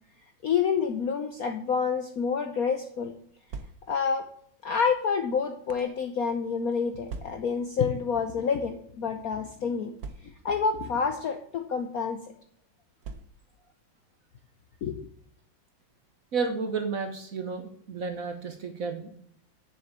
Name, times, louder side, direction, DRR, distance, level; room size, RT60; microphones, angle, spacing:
voice 1, 0.4-3.1 3.9-4.3 4.6-9.9 10.2-12.2 14.8-15.0, left 6 dB, 60° left, 6 dB, 1.0 m, -28 dB
sound 1, 3.3-4.1 4.9-6.0 7.1-7.7 8.5-8.7 9.0-9.1 10.0-10.6 11.5-11.7 13.0-13.6, right 4 dB, 65° right, 1.0 m, -42 dB
voice 2, 16.3-19.1, right 4 dB, 45° right, 6 dB, 1.3 m, -32 dB
7.6 x 6.7 x 7.3 m, 0.63 s
omnidirectional pair, 2.4 m